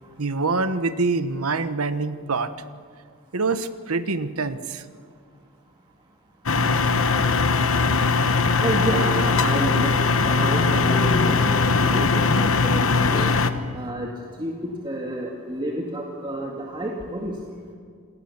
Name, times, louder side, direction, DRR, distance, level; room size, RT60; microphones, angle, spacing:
voice 1, 0.2-2.5 3.3-4.8 10.4-10.5, right 3 dB, 85° right, 12 dB, 1.2 m, -25 dB
sound 1, 6.5-13.5, left 4 dB, 65° left, 1.2 m, -20 dB
voice 2, 8.6-13.3 13.7-14.1 14.4-17.5, right 1 dB, 20° right, -1 dB, 2.2 m, -30 dB
27.5 x 19.5 x 7.3 m, 2.1 s
head